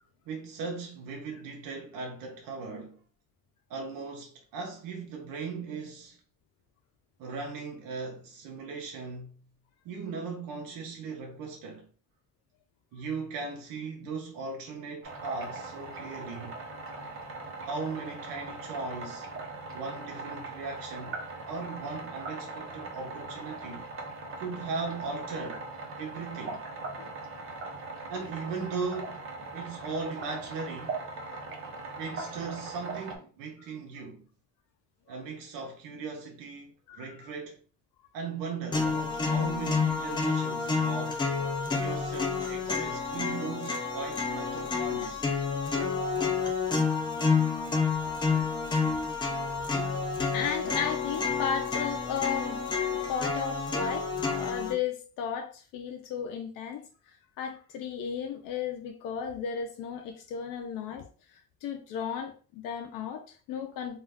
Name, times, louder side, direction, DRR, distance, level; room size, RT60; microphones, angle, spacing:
voice 1, 0.3-3.0 3.7-6.2 7.2-9.3 9.8-11.9 12.9-16.6 17.6-19.3 19.7-21.2 21.5-23.9 24.4-25.7 26.0-26.6 28.1-29.3 29.5-31.0 32.0-34.2 35.1-37.6 38.1-41.2 41.7-45.2, right 4 dB, 75° right, 0.6 m, -38 dB
sound 1, 15.0-33.2, right 3 dB, 40° right, 0.7 m, -40 dB
voice 2, 36.9-37.3 50.3-52.6 52.9-56.8 57.4-61.1 61.6-64.0, left 7 dB, 75° left, 0.5 m, -34 dB
sound 2, 38.7-54.7, left 4 dB, 15° left, 0.3 m, -29 dB
2.3 x 2.3 x 3.3 m
cardioid pair, 160°, 33 cm